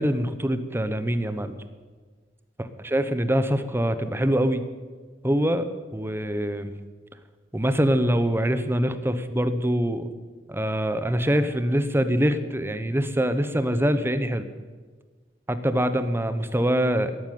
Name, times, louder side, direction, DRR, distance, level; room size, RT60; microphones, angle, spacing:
voice 1, 0.0-1.5 2.6-4.6 5.2-6.7 7.5-10.1 10.5-14.4 15.5-17.1, equal, 15° right, 11 dB, 1.0 m, -24 dB
13.0 x 11.5 x 9.4 m, 1.4 s
head